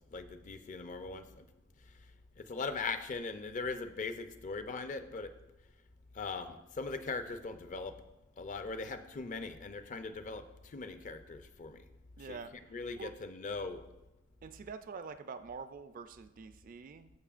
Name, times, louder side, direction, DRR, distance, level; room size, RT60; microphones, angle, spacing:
voice 1, 0.1-1.4 2.4-5.3 6.1-8.0 8.4-11.8 12.3-12.4 12.7-13.8, left 4 dB, 40° left, 9 dB, 0.5 m, -40 dB
voice 2, 12.2-12.5 12.9-13.1 14.4-17.1, right 5 dB, 40° right, 11 dB, 0.3 m, -46 dB
14.0 x 5.5 x 2.5 m, 0.99 s
head